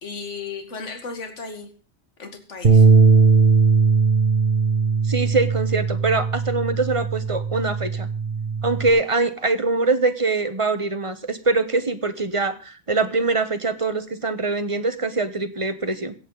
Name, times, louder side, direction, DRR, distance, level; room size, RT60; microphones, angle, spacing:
voice 1, 0.0-1.7 2.2-2.9, left 4 dB, 70° left, 5 dB, 2.2 m, -35 dB
Bass guitar, 2.6-8.9, right 5 dB, 45° right, 1.4 m, -19 dB
voice 2, 5.1-8.1 8.6-16.1, right 3 dB, 30° right, 11 dB, 1.1 m, -23 dB
24.0 x 8.4 x 4.0 m, 0.37 s
omnidirectional pair, 1.3 m